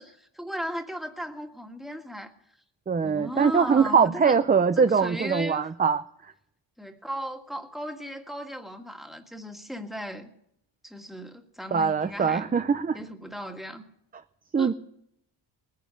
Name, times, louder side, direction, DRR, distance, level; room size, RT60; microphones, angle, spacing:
voice 1, 0.0-2.3 3.0-4.4 4.8-5.7 6.8-10.3 10.8-12.5 12.9-13.8 14.6-14.7, equal, ahead, 4 dB, 1.9 m, -36 dB
voice 2, 2.9-6.0 11.7-13.0 14.5-14.7, right 6 dB, 20° right, 9 dB, 0.6 m, -22 dB
20.0 x 10.5 x 6.5 m, 0.75 s
cardioid pair, 120°, 44 cm